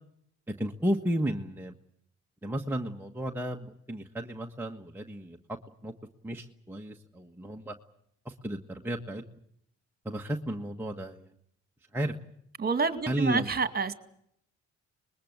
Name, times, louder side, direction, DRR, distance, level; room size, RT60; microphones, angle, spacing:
voice 1, 0.5-1.7 2.4-5.6 5.8-5.9 6.2-7.8 8.2-9.2 10.0-11.3 11.9-12.1 13.1-13.5, right 1 dB, 5° right, 1 dB, 1.4 m, -33 dB
voice 2, 12.6-13.9, right 4 dB, 30° right, 10 dB, 2.3 m, -28 dB
25.5 x 21.0 x 8.0 m, 0.71 s
cardioid pair, 90°, 30 cm